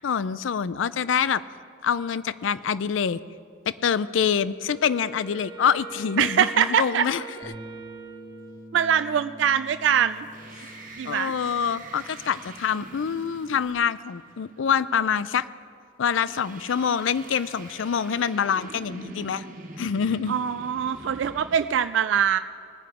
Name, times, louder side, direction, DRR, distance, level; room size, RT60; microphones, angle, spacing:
voice 1, 0.0-1.4 1.8-3.2 3.7-7.2 10.6-10.7 11.0-15.5 16.0-19.4 19.8-20.3, left 7 dB, 80° left, 17 dB, 0.4 m, -25 dB
Wind instrument woodwind instrument, 4.7-9.1, right 4 dB, 20° right, 0.6 m, -43 dB
voice 2, 6.2-7.0 8.7-10.3 11.0-11.3 20.3-22.4, right 8 dB, 70° right, 11 dB, 0.3 m, -23 dB
Bass guitar, 7.4-13.7, equal, 5° left, 2.0 m, -47 dB
sound 1, 10.1-14.6 16.1-21.6, right 2 dB, 45° right, 1.3 m, -44 dB
19.5 x 9.1 x 4.9 m, 2.2 s
head